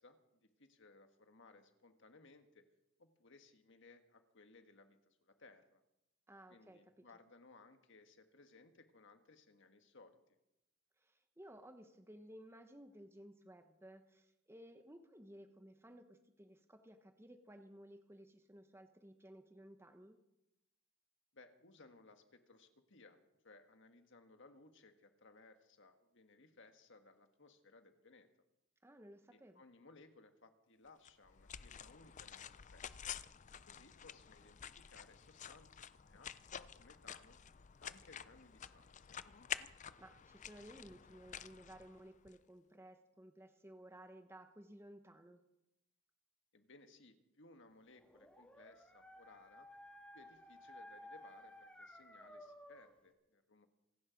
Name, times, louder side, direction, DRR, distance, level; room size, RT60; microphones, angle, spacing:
voice 1, 0.0-2.6 3.0-5.8 6.5-10.2 21.3-23.2 23.4-28.3 29.3-33.2 33.7-37.4 37.8-39.2 46.5-49.7 50.1-53.7, left 3 dB, 60° left, 7 dB, 1.6 m, -63 dB
voice 2, 6.3-7.0 11.0-20.2 28.8-29.6 40.0-45.4, right 1 dB, 10° right, 7 dB, 0.9 m, -57 dB
sound 1, 31.1-42.4, left 8 dB, 35° left, 0.5 m, -50 dB
Dog, 47.9-53.0, left 1 dB, 5° left, 1.8 m, -56 dB
26.5 x 9.7 x 5.2 m, 0.89 s
head